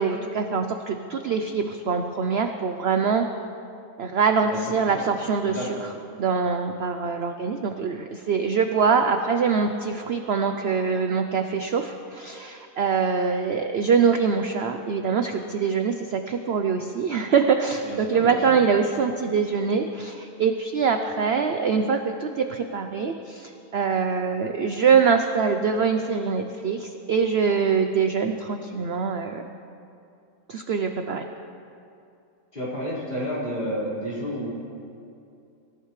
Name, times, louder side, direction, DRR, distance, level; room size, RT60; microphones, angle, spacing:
voice 1, 0.0-3.3 4.0-5.8 6.2-29.4 30.5-31.2, right 5 dB, 55° right, 6 dB, 0.7 m, -24 dB
voice 2, 5.4-5.9 17.8-18.5 32.5-34.5, equal, 30° left, -9 dB, 5.0 m, -31 dB
24.0 x 14.5 x 3.2 m, 2.6 s
omnidirectional pair, 1.7 m